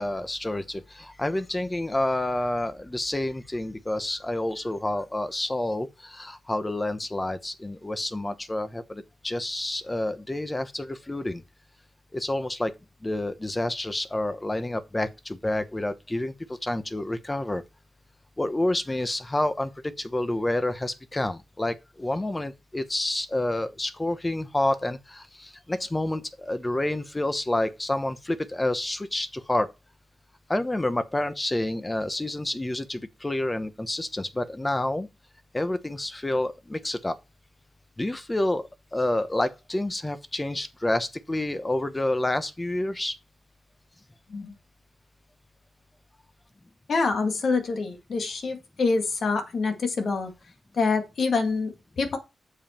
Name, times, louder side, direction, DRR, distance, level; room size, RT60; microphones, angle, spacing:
voice 1, 0.0-11.4 12.1-12.7 13.0-16.3 16.6-17.6 18.4-29.7 30.5-35.1 35.5-37.2 38.0-43.2, left 1 dB, 15° left, 1.0 m, -29 dB
voice 2, 46.9-50.3 50.7-52.2, left 4 dB, 60° left, 2.0 m, -26 dB
8.3 x 7.3 x 4.4 m
wide cardioid pair, 110°, 0 cm